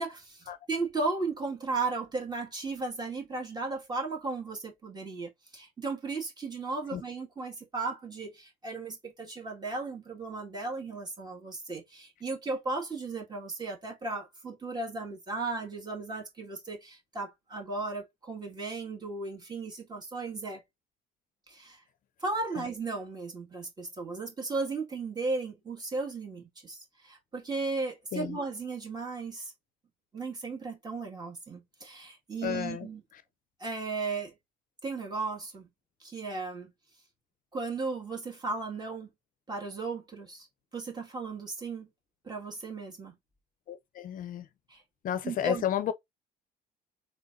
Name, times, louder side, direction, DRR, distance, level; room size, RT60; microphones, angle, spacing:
voice 1, 0.0-20.6 21.5-21.8 22.2-29.5 30.1-33.0 33.6-34.3 34.8-35.7 36.0-36.7 37.5-39.1 39.5-40.5 40.7-41.9 42.2-43.2 44.7-44.8 45.2-45.6, right 3 dB, 25° right, 1.9 m, -35 dB
voice 2, 32.4-32.9 43.7-44.5 45.0-45.9, left 10 dB, 55° left, 0.6 m, -32 dB
3.8 x 3.5 x 2.6 m
cardioid pair, 110°, 17 cm